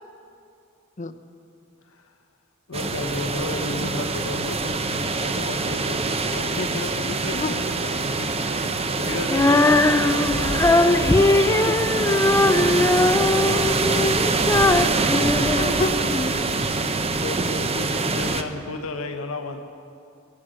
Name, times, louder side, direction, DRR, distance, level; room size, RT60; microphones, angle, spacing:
voice 1, 2.7-8.4 8.9-15.2 18.1-19.6, left 3 dB, 80° left, 5 dB, 1.0 m, -34 dB
sound 1, 2.7-18.4, right 3 dB, 30° right, 0.7 m, -24 dB
Female singing, 9.3-16.3, left 2 dB, 15° left, 0.4 m, -20 dB
voice 2, 15.4-15.9 16.5-16.7 17.2-18.1, left 3 dB, 35° left, 9 dB, 0.8 m, -30 dB
23.0 x 7.9 x 7.8 m, 2.5 s
head